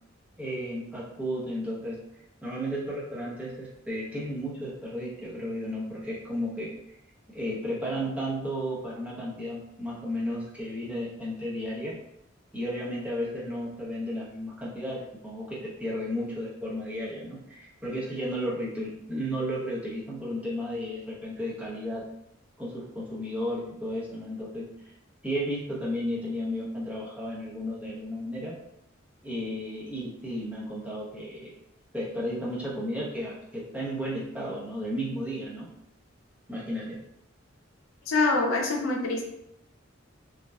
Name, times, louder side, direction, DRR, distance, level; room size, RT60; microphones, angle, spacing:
voice 1, 0.4-2.0 2.4-6.7 7.3-11.9 12.5-22.0 22.6-24.7 25.2-28.5 29.2-31.6 31.9-35.7 36.5-37.0, equal, 5° right, -7 dB, 0.6 m, -33 dB
voice 2, 38.1-39.2, left 3 dB, 90° left, 1 dB, 0.5 m, -25 dB
2.6 x 2.1 x 2.2 m, 0.79 s
head